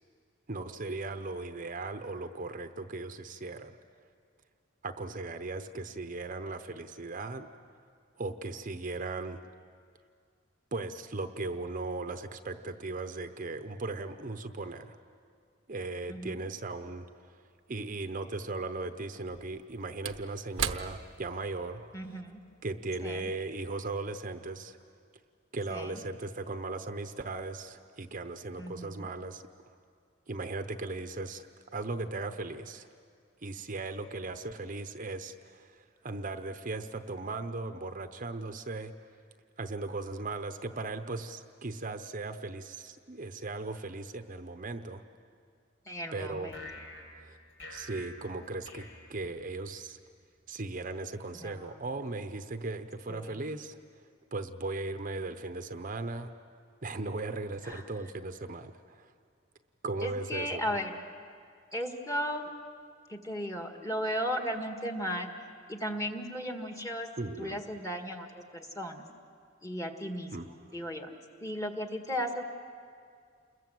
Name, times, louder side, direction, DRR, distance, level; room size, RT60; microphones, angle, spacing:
voice 1, 0.5-3.8 4.8-7.5 8.2-9.4 10.7-15.0 15.7-17.1 17.7-21.9 22.6-24.8 25.5-29.4 30.3-31.5 31.7-32.9 33.4-38.9 39.6-45.0 46.1-46.5 47.2-47.4 47.7-50.0 50.5-53.8 54.3-56.3 56.8-59.1 59.8-60.6 67.2-67.6 70.3-70.8, right 3 dB, 45° right, 8 dB, 0.8 m, -37 dB
voice 2, 16.1-16.4 21.9-22.4 23.0-23.3 25.7-26.0 28.6-29.1 45.9-46.6 51.4-51.9 53.1-53.4 57.6-57.8 60.0-61.0 61.7-62.5 63.1-65.3 65.7-67.1 67.4-69.1 69.6-71.1 71.4-72.4, equal, 15° left, 4 dB, 1.8 m, -36 dB
Slam / Wood, 17.6-17.7 19.1-23.8 24.2-24.3, right 8 dB, 85° right, 0.9 m, -40 dB
sound 1, 46.5-49.9, left 1 dB, 70° left, 5.1 m, -48 dB
28.5 x 21.5 x 7.8 m, 2.2 s
head